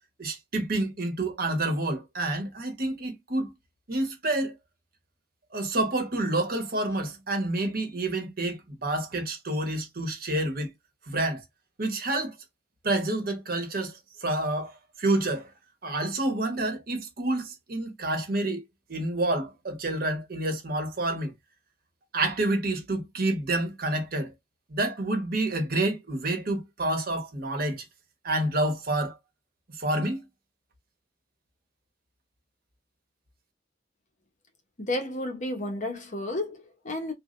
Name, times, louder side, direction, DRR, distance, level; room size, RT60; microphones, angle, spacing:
voice 1, 0.2-3.5 3.9-4.5 5.5-10.7 11.1-11.4 11.8-12.3 12.8-15.5 15.8-18.6 18.9-21.3 22.1-24.3 24.7-27.8 28.2-29.2 29.8-30.3, right 2 dB, 50° right, 1.1 m, -28 dB
voice 2, 34.8-37.1, left 1 dB, 40° left, 1.0 m, -32 dB
3.9 x 2.3 x 3.1 m
head